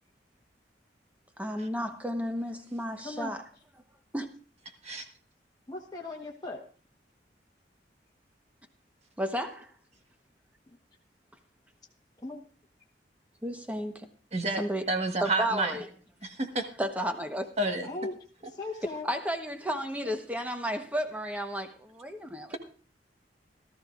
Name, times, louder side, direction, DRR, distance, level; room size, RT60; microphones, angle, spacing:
voice 1, 1.4-3.5 4.1-4.3 9.2-9.7 13.4-14.1 14.6-14.8 15.2-15.9 16.8-17.5 19.0-22.6, equal, 10° right, 1.1 m, -32 dB
voice 2, 5.7-6.6 12.2-12.4 17.8-18.1 18.6-19.1, left 2 dB, 20° left, 1.3 m, -37 dB
voice 3, 14.3-14.6 14.9-15.7 16.2-16.7 17.6-17.9, right 2 dB, 40° right, 1.5 m, -29 dB
17.5 x 13.5 x 2.5 m
head